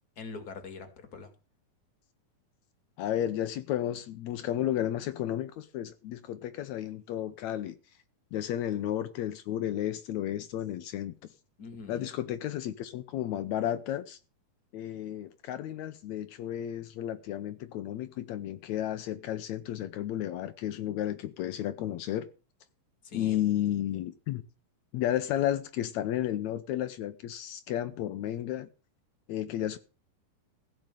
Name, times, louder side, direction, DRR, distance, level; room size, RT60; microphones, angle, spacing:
voice 1, 0.2-1.3 11.6-12.1 23.0-23.4, left 4 dB, 30° left, 2.0 m, -43 dB
voice 2, 3.0-7.8 8.3-11.3 11.9-14.2 14.7-22.3 23.1-24.4 24.9-28.7 29.3-29.8, left 12 dB, 90° left, 1.6 m, -32 dB
15.5 x 5.3 x 9.0 m
omnidirectional pair, 4.3 m